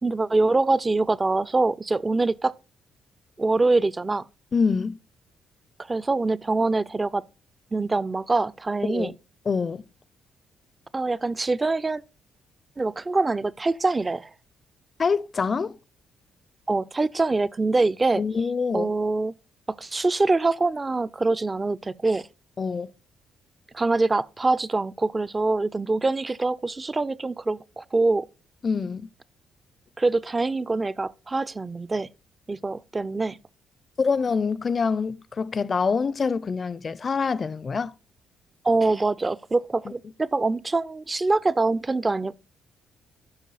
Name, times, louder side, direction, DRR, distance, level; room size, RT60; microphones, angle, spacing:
voice 1, 0.0-2.5 3.4-4.2 5.9-7.2 7.7-9.1 10.9-12.0 12.8-14.3 16.7-18.2 18.7-19.3 19.8-22.3 23.7-28.3 30.0-32.1 32.5-33.4 38.6-42.3, right 3 dB, 25° right, 0.4 m, -24 dB
voice 2, 4.5-5.0 8.9-9.1 9.5-9.8 15.0-15.8 18.1-18.9 22.6-22.9 28.6-29.1 34.0-37.9, left 5 dB, 40° left, 0.5 m, -25 dB
12.0 x 5.3 x 4.1 m
cardioid pair, 90°, 0 cm